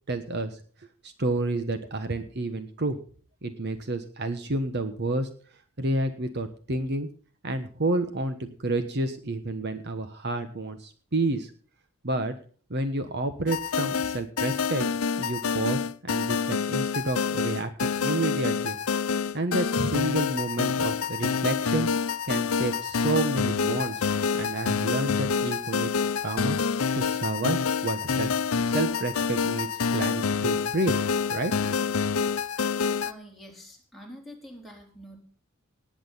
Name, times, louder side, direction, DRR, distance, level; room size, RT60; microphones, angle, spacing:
voice 1, 0.1-0.6 1.0-3.0 3.4-5.3 5.8-7.1 7.4-11.5 12.0-12.3 12.7-14.9 15.2-18.8 19.3-21.9 22.2-24.1 24.3-25.9 26.2-26.6 26.9-28.3 28.6-30.9 31.3-31.8, right 2 dB, 50° right, 9 dB, 1.3 m, -30 dB
sound 1, 13.5-33.1, left 5 dB, 75° left, 0.7 m, -27 dB
voice 2, 33.0-35.2, equal, ahead, -2 dB, 4.1 m, -46 dB
19.0 x 8.7 x 5.7 m, 0.43 s
head